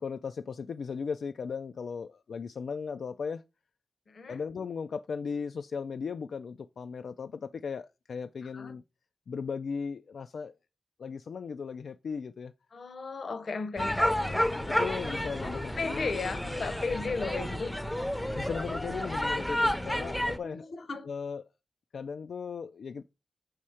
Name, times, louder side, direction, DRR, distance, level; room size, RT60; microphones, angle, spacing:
voice 1, 0.0-3.4 4.3-8.8 9.3-10.6 11.0-12.5 14.7-16.1 18.3-20.7 21.1-21.4 21.9-23.0, left 5 dB, 85° left, 0.3 m, -37 dB
voice 2, 4.1-4.4 8.4-8.8 12.7-14.5 15.4-17.8 20.4-21.1, left 4 dB, 55° left, 0.8 m, -36 dB
sound 1, 13.8-20.4, left 1 dB, 5° left, 0.5 m, -31 dB
6.3 x 4.9 x 4.3 m
wide cardioid pair, 175°, 0 cm